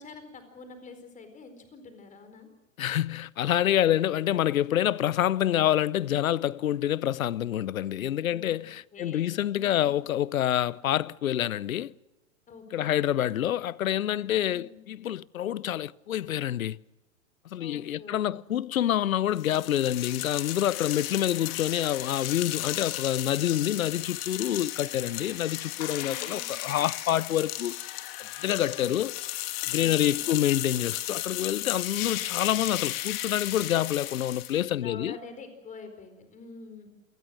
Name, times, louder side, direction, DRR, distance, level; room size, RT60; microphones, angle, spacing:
voice 1, 0.0-2.5 8.2-8.6 8.9-9.9 12.5-12.9 14.4-14.8 17.6-18.5 26.0-26.5 29.8-30.4 34.8-36.9, left 4 dB, 20° left, 4.3 m, -46 dB
voice 2, 2.8-11.9 12.7-16.8 17.5-27.8 28.2-29.2 29.7-35.2, left 11 dB, 80° left, 0.7 m, -27 dB
sound 1, 19.4-34.6, left 15 dB, 45° left, 2.3 m, -35 dB
27.5 x 19.0 x 6.3 m
hypercardioid pair, 120°, 41 cm